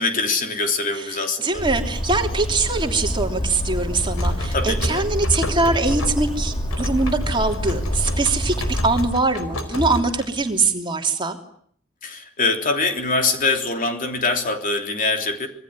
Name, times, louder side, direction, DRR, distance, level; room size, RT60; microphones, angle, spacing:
voice 1, 0.0-1.6 4.5-5.0 12.0-15.5, left 3 dB, 40° left, 5 dB, 3.3 m, -23 dB
voice 2, 1.4-11.4, right 3 dB, 25° right, 4 dB, 3.1 m, -23 dB
Bird, 1.5-9.2, equal, 25° left, 4.1 m, -27 dB
sound 1, 3.8-10.7, equal, 85° left, 4.3 m, -30 dB
26.0 x 21.5 x 9.8 m, 0.64 s
head